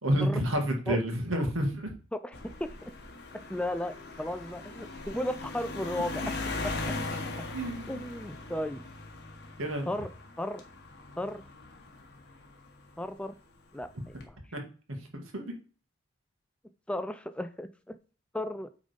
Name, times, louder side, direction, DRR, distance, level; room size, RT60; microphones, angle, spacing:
voice 1, 0.0-1.9 7.5-8.0 9.6-9.9 14.5-14.6 15.1-15.5, equal, 85° right, 3 dB, 2.0 m, -29 dB
voice 2, 2.1-2.9 3.5-6.2 6.8-6.9 7.4-7.5 7.9-8.8 9.9-10.1 10.4-10.6 11.2-11.4 13.0-13.4 13.7-14.2 16.9-18.0 18.3-18.7, left 1 dB, 5° left, 10 dB, 0.4 m, -35 dB
sound 1, 2.3-13.0 13.8-14.2, left 3 dB, 55° left, 1.6 m, -40 dB
8.7 x 3.9 x 5.1 m, 0.38 s
head